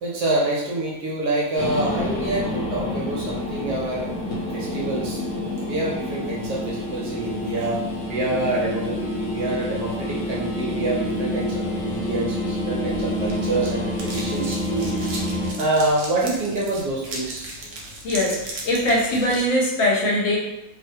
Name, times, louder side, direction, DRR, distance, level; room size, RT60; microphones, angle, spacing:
voice 1, 0.0-4.1 4.5-5.2 5.7-7.8 8.1-15.0 15.6-17.4, right 2 dB, 65° right, -4 dB, 1.1 m, -26 dB
sound 1, 1.6-15.5, left 1 dB, 65° left, 0.9 m, -28 dB
sound 2, 12.9-19.5, right 2 dB, 85° right, 0.6 m, -37 dB
voice 2, 18.0-20.4, left 1 dB, 85° left, -3 dB, 1.5 m, -21 dB
3.2 x 2.1 x 2.7 m, 0.93 s
omnidirectional pair, 2.1 m